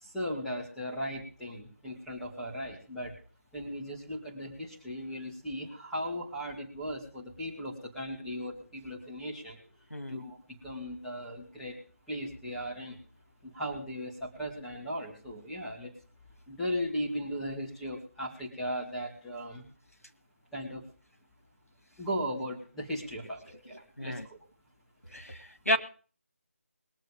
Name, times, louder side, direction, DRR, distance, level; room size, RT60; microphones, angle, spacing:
voice 1, 0.0-3.1 3.5-9.6 10.1-11.8 12.1-13.0 13.4-15.9 16.5-19.6 20.5-20.8 22.0-24.4, equal, 5° left, -7 dB, 2.3 m, -37 dB
voice 2, 9.9-10.2 23.7-24.3 25.1-25.8, equal, 90° left, 6 dB, 2.2 m, -32 dB
22.0 x 7.5 x 5.2 m, 0.41 s
figure-of-eight pair, 160°, 8 cm